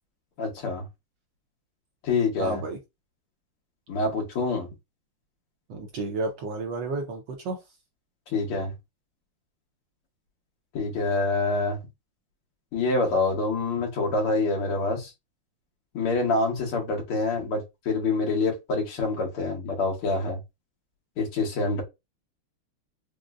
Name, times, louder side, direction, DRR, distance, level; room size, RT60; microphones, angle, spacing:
voice 1, 0.4-0.9 2.0-2.6 3.9-4.7 8.3-8.7 10.7-11.8 12.7-15.1 15.9-20.4 21.2-21.8, left 3 dB, 80° left, 2.1 m, -26 dB
voice 2, 2.4-2.8 5.7-7.6, right 3 dB, 70° right, 1.1 m, -31 dB
5.0 x 2.1 x 2.4 m
omnidirectional pair, 2.4 m